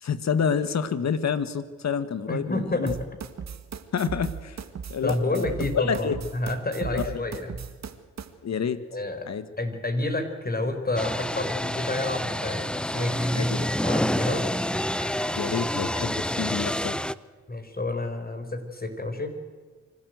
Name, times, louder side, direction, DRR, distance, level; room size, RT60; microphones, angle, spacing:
voice 1, 0.0-2.9 3.9-4.6 4.9-6.2 6.9-7.2 8.4-8.8 9.3-9.5 13.3-13.7 15.3-17.0, left 7 dB, 65° left, 13 dB, 1.6 m, -28 dB
voice 2, 2.3-3.0 5.0-7.7 8.9-9.3 9.6-14.5 15.0-15.1 17.5-19.3, left 2 dB, 30° left, 7 dB, 4.7 m, -29 dB
sound 1, 2.9-8.3, right 7 dB, 65° right, 1.9 m, -36 dB
sound 2, 11.0-17.1, left 1 dB, 5° left, 0.8 m, -28 dB
25.0 x 13.0 x 7.9 m, 1.5 s
cardioid pair, 55°, 30 cm